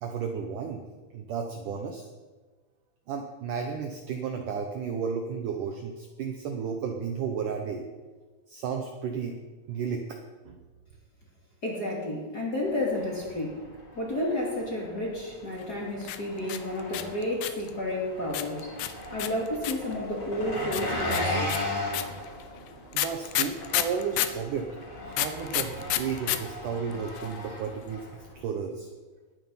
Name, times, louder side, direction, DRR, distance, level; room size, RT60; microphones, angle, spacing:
voice 1, 0.0-0.8 1.1-2.1 3.1-7.8 8.5-9.4 9.7-10.2 10.5-10.6 22.9-24.7 25.0-28.1 28.4-28.9, right 6 dB, 85° right, 4 dB, 1.8 m, -33 dB
voice 2, 11.6-13.6 14.0-18.7 19.1-21.6, left 1 dB, 30° left, -3 dB, 2.2 m, -31 dB
Engine, 12.6-28.4, left 1 dB, 15° left, 2.8 m, -37 dB
sound 1, 16.0-17.7 18.3-19.9 20.7-24.4 25.1-26.4 26.6-26.7 26.9-27.4, left 14 dB, 80° left, 2.6 m, -29 dB
20.5 x 9.3 x 5.6 m, 1.3 s
omnidirectional pair, 5.1 m